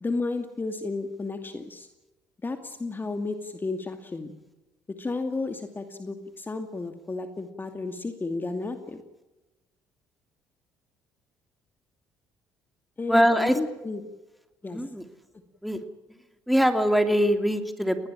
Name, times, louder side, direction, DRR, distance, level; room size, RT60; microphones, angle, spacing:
voice 1, 0.0-1.9 2.4-4.3 5.0-9.0 13.0-14.0 14.6-14.8, left 3 dB, 25° left, 7 dB, 2.4 m, -32 dB
voice 2, 13.1-13.6 14.6-15.0 15.6-15.8 16.5-18.1, equal, ahead, 7 dB, 3.0 m, -22 dB
21.0 x 19.0 x 8.9 m, 1.0 s
hypercardioid pair, 55°, 8 cm